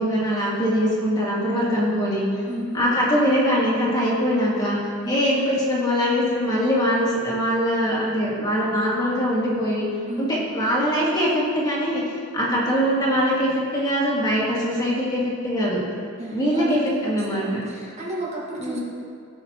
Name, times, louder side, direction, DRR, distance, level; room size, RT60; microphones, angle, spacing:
voice 1, 0.0-2.3 2.7-4.8 5.1-9.9 10.2-15.8 16.3-17.7 18.6-18.8, equal, 20° left, -6 dB, 1.9 m, -22 dB
voice 2, 2.5-2.8 5.0-5.3 10.1-10.5 16.2-18.8, right 1 dB, 35° right, -5 dB, 1.5 m, -32 dB
17.0 x 5.7 x 2.9 m, 2.3 s
head